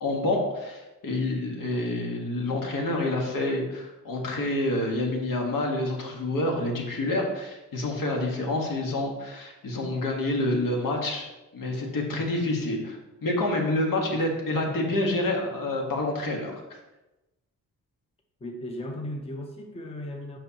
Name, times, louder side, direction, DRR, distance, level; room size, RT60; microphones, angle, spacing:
voice 1, 0.0-16.5, left 2 dB, 75° left, 0 dB, 1.6 m, -28 dB
voice 2, 18.4-20.4, left 1 dB, 20° left, 3 dB, 0.6 m, -36 dB
7.9 x 5.5 x 2.9 m, 1.0 s
wide cardioid pair, 160°, 33 cm